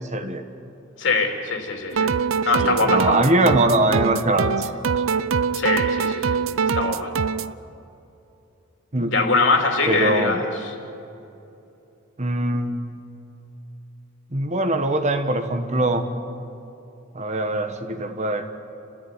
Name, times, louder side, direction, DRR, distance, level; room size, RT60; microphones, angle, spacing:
voice 1, 0.1-0.4 2.6-4.7 8.9-9.2 9.9-10.4 12.2-12.8 14.3-16.1 17.1-18.4, right 1 dB, 35° right, 7 dB, 1.4 m, -22 dB
voice 2, 1.0-2.1 2.4-3.3 5.5-6.4 6.7-7.1 9.1-10.5, left 3 dB, 65° left, 3 dB, 3.3 m, -22 dB
sound 1, 1.9-7.5, right 5 dB, 90° right, 0.6 m, -24 dB
30.0 x 13.5 x 9.7 m, 2.8 s
head